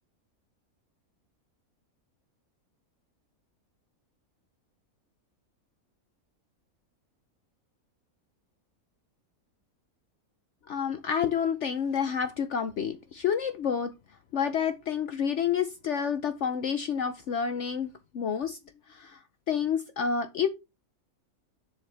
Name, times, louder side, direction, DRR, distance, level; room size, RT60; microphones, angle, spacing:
voice 1, 10.7-13.9 14.3-17.9 18.1-18.6 18.9-19.2 19.5-20.5, left 7 dB, 60° left, 0.9 m, -29 dB
7.5 x 6.5 x 3.4 m
omnidirectional pair, 1.5 m